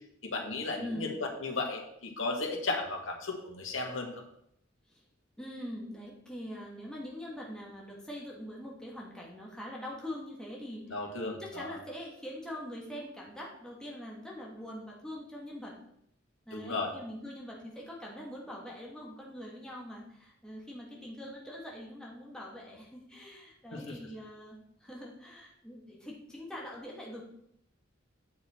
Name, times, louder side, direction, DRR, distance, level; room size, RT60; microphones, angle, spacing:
voice 1, 0.2-4.1 10.9-11.8 16.5-16.9 23.7-24.0, left 3 dB, 90° left, 1 dB, 1.8 m, -35 dB
voice 2, 0.8-1.1 4.9-5.0 5.4-10.9 11.4-15.7 16.4-27.2, equal, 5° left, -3 dB, 1.8 m, -43 dB
9.4 x 6.4 x 4.4 m, 0.74 s
head